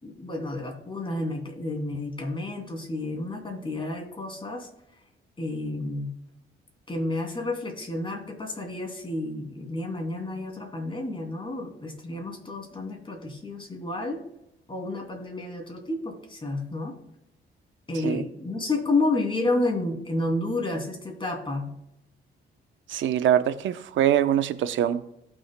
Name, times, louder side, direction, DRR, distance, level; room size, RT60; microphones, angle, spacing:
voice 1, 0.0-4.7 5.4-6.1 6.9-14.2 14.7-17.0 17.9-21.7, left 2 dB, 25° left, 2 dB, 2.7 m, -30 dB
voice 2, 22.9-25.1, right 10 dB, 75° right, 11 dB, 0.8 m, -23 dB
17.5 x 6.2 x 2.2 m, 0.81 s
cardioid pair, 90°, 20 cm